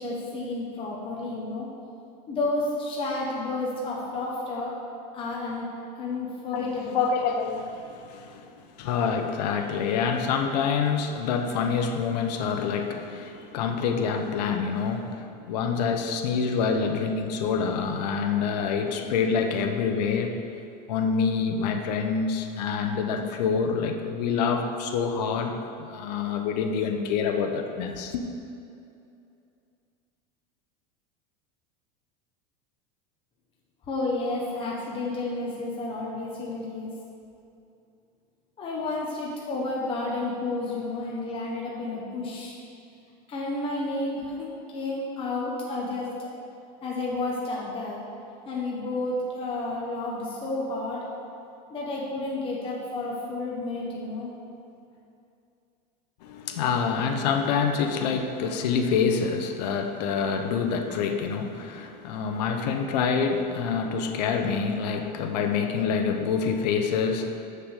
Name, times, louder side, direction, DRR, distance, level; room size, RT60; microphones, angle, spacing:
voice 1, 0.0-1.7 2.3-4.8 5.1-5.7 5.9-7.1 33.9-36.9 38.6-42.6 43.3-46.3 46.8-48.0 48.4-51.0 51.7-54.3, left 2 dB, 25° left, -4 dB, 1.3 m, -31 dB
voice 2, 6.5-20.4 20.9-28.2 56.2-67.5, left 6 dB, 80° left, 5 dB, 0.9 m, -27 dB
6.9 x 6.7 x 6.5 m, 2.6 s
supercardioid pair, 145°, 21 cm